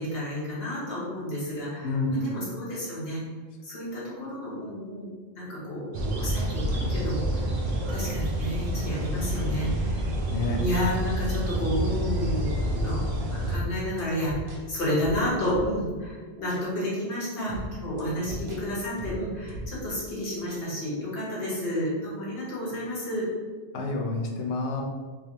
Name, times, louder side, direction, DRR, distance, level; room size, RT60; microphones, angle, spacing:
voice 1, 0.0-2.0 2.2-3.2 3.6-5.1 5.4-7.2 7.9-10.0 10.6-13.0 13.3-23.3, equal, 55° left, -7 dB, 1.5 m, -31 dB
voice 2, 1.8-2.4 2.7-2.8 10.3-10.6 18.3-18.4 23.7-24.8, left 2 dB, 75° left, 1 dB, 0.9 m, -29 dB
sound 1, 5.9-13.6, right 1 dB, 65° right, 0.8 m, -28 dB
sound 2, 13.5-16.0 16.5-16.7 17.5-20.0 20.5-20.7, right 1 dB, 45° right, 0.4 m, -38 dB
3.4 x 3.2 x 2.8 m, 1.4 s
omnidirectional pair, 1.2 m